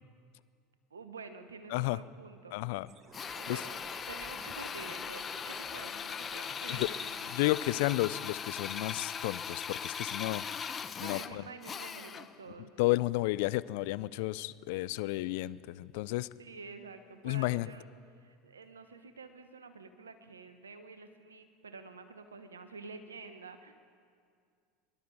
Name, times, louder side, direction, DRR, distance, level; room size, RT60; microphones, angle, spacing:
voice 1, 0.9-2.8 3.2-7.3 11.0-12.7 16.4-17.9 18.1-23.7, right 4 dB, 85° right, 9 dB, 1.1 m, -49 dB
voice 2, 2.5-2.9 3.5-3.6 6.7-6.9 7.3-10.4 11.0-11.4 12.8-16.3 17.2-17.7, left 19 dB, 65° left, 18 dB, 0.4 m, -32 dB
sound 1, 2.8-7.8, right 5 dB, 35° right, 1.2 m, -53 dB
Drill, 3.1-12.4, left 7 dB, 30° left, 0.7 m, -39 dB
22.0 x 11.5 x 4.7 m, 2.2 s
hypercardioid pair, 80°, 0 cm